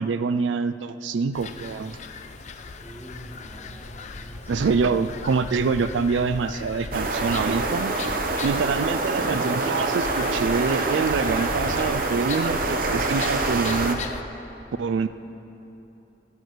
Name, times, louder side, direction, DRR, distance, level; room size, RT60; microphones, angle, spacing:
voice 1, 0.0-2.0 4.5-8.0 8.4-14.0 14.8-15.1, right 5 dB, 85° right, 12 dB, 0.4 m, -25 dB
sound 1, 1.3-14.2, left 3 dB, 40° left, 0.5 m, -36 dB
voice 2, 2.8-4.8, right 1 dB, 10° right, 0 dB, 1.3 m, -44 dB
sound 2, 6.9-13.9, right 3 dB, 50° right, 0.9 m, -26 dB
15.0 x 8.3 x 6.5 m, 2.9 s
head